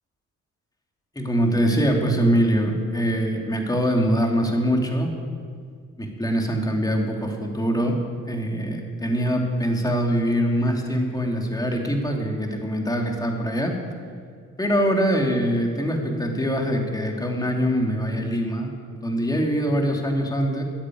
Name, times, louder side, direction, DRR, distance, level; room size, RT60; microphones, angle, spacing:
voice 1, 1.1-5.1 6.0-8.0 8.2-13.8 14.6-18.7 19.0-20.6, equal, 10° left, 1 dB, 2.8 m, -23 dB
14.5 x 10.0 x 9.4 m, 2.1 s
cardioid pair, 90°, 30 cm